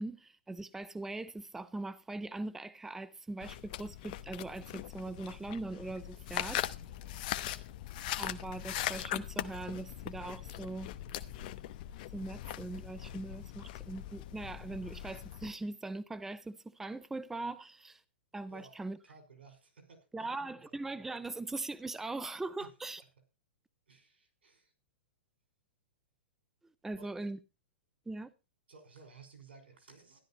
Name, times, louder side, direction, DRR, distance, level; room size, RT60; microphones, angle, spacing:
voice 1, 0.0-6.6 8.2-10.9 12.1-18.0 18.3-19.0 20.1-23.0 26.8-27.4 28.1-28.3, right 2 dB, 5° right, 0.7 m, -41 dB
sound 1, 3.4-15.5, left 13 dB, 50° left, 0.9 m, -40 dB
voice 2, 6.8-7.3 18.5-18.8 19.0-20.8 22.6-22.7 23.9-24.7 26.9-27.3 28.7-30.2, right 4 dB, 85° right, 5.3 m, -57 dB
13.0 x 11.5 x 4.2 m
hypercardioid pair, 130°, 6 cm